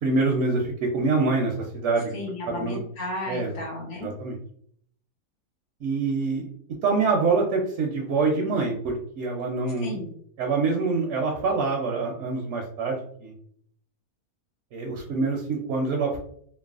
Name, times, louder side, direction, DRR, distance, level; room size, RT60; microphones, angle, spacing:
voice 1, 0.0-2.1 2.5-2.8 3.3-3.5 4.0-4.4 5.8-6.5 6.8-10.0 10.4-13.3 14.7-16.2, right 3 dB, 65° right, 0 dB, 0.7 m, -25 dB
voice 2, 2.1-4.1 9.8-10.1, left 1 dB, 85° left, -2 dB, 1.5 m, -34 dB
3.2 x 2.1 x 2.3 m, 0.64 s
omnidirectional pair, 1.6 m